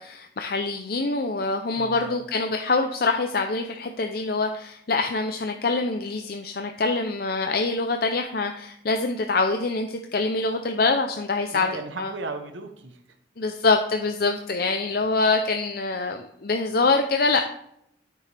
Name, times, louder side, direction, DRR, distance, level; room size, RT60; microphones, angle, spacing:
voice 1, 0.0-11.7 12.0-12.1 13.4-17.4, left 3 dB, 55° left, 5 dB, 0.6 m, -25 dB
voice 2, 1.8-2.2 11.5-13.0, right 3 dB, 85° right, 6 dB, 1.0 m, -35 dB
12.0 x 6.9 x 3.4 m, 0.76 s
head